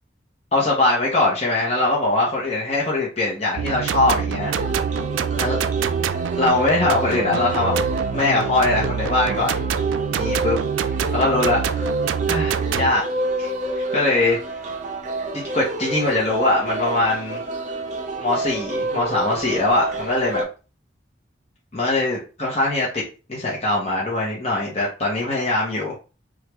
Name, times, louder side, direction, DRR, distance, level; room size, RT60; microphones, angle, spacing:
voice 1, 0.5-4.5 5.4-5.6 6.4-7.8 8.1-9.6 10.1-10.6 11.1-11.9 12.3-13.0 13.4-14.4 15.3-17.4 18.2-20.4 21.7-23.0 23.3-26.0, left 2 dB, 35° left, -4 dB, 0.8 m, -22 dB
sound 1, 3.6-12.9, right 7 dB, 90° right, 0.3 m, -26 dB
sound 2, 4.4-20.4, right 2 dB, 40° right, 0.5 m, -28 dB
3.3 x 2.4 x 3.0 m, 0.33 s
head